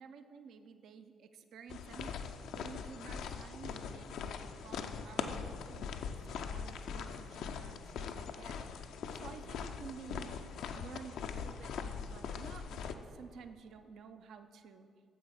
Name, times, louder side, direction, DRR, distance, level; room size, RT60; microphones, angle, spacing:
voice 1, 0.0-2.1 2.5-10.4 10.7-14.9, right 6 dB, 60° right, 9 dB, 0.5 m, -52 dB
sound 1, 1.7-12.9, left 6 dB, 60° left, 0.4 m, -41 dB
9.3 x 7.6 x 4.2 m, 2.1 s
figure-of-eight pair, 40°, 0 cm